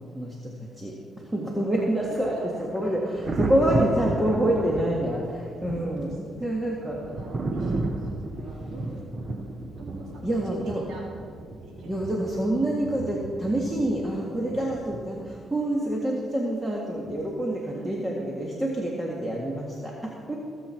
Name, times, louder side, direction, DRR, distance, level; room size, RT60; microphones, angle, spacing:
voice 1, 0.1-2.4 2.7-7.0 10.2-10.8 11.9-20.4, right 1 dB, 15° right, -2 dB, 1.8 m, -27 dB
Thunder, 1.8-15.4 17.1-17.3, right 2 dB, 40° right, 1.1 m, -34 dB
voice 2, 7.0-8.9 9.8-11.0 11.6-11.9 17.6-18.0, right 2 dB, 75° right, -3 dB, 3.4 m, -45 dB
22.5 x 8.0 x 4.5 m, 2.3 s
cardioid pair, 90°, 0 cm